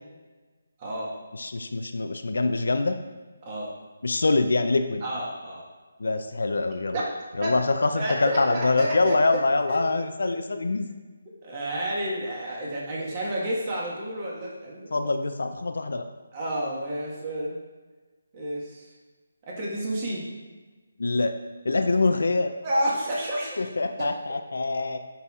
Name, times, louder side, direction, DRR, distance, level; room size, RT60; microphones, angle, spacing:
voice 1, 0.8-1.1 3.4-3.7 5.0-5.6 6.9-7.0 7.4-7.5 7.9-9.4 9.7-10.4 11.4-15.1 16.3-17.5 18.3-18.9 19.4-20.2 22.6-23.6 24.0-24.1, right 1 dB, 30° right, -4 dB, 1.5 m, -30 dB
voice 2, 1.4-3.0 4.0-5.0 6.0-7.0 7.4-10.9 14.9-16.0 21.0-21.3 21.6-22.5 23.6-25.0, left 3 dB, 70° left, 7 dB, 0.4 m, -24 dB
9.7 x 4.0 x 2.4 m, 1.3 s
figure-of-eight pair, 150°, 0 cm